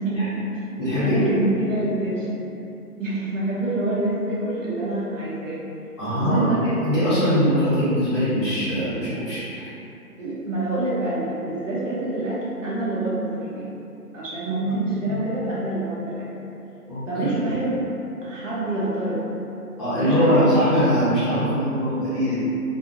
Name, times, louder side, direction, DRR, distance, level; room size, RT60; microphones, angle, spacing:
voice 1, 0.0-0.6 1.0-2.4 3.0-5.6 6.2-6.7 10.2-13.7 14.1-16.3 17.1-17.8 18.2-19.2 19.9-20.5, right 2 dB, 55° right, -7 dB, 0.7 m, -26 dB
voice 2, 0.8-1.2 6.0-6.5 6.8-9.4 15.1-15.2 16.9-17.0 19.8-22.4, equal, 20° left, -17 dB, 0.8 m, -21 dB
2.4 x 2.0 x 2.8 m, 2.8 s
hypercardioid pair, 155°, 47 cm